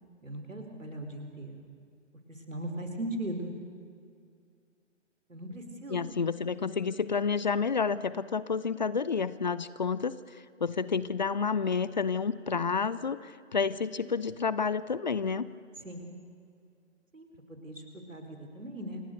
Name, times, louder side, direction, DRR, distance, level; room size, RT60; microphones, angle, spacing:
voice 1, 0.2-1.7 2.3-3.5 5.3-6.0 15.8-16.1 17.1-17.8 18.1-19.0, right 1 dB, 85° right, 4 dB, 4.4 m, -39 dB
voice 2, 5.9-15.5, left 5 dB, 40° left, 17 dB, 0.6 m, -30 dB
27.5 x 18.5 x 6.6 m, 2.3 s
figure-of-eight pair, 140°, 38 cm